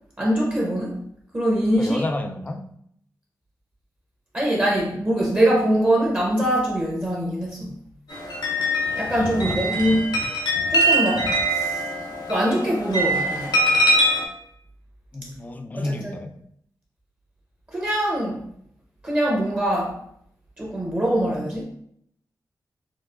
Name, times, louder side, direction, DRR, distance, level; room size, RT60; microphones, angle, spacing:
voice 1, 0.2-1.0 1.3-2.0 4.3-7.7 9.0-10.1 10.7-11.8 12.3-13.5 15.7-16.2 17.7-18.4 19.0-19.9 20.6-21.6, right 1 dB, 25° right, -4 dB, 0.8 m, -23 dB
voice 2, 1.8-2.7 9.3-10.0 15.1-16.4, left 2 dB, 20° left, 7 dB, 0.3 m, -31 dB
sound 1, 8.1-14.3, right 1 dB, 80° left, 0.8 m, -23 dB
4.4 x 2.1 x 2.4 m, 0.69 s
wide cardioid pair, 80°, 7 cm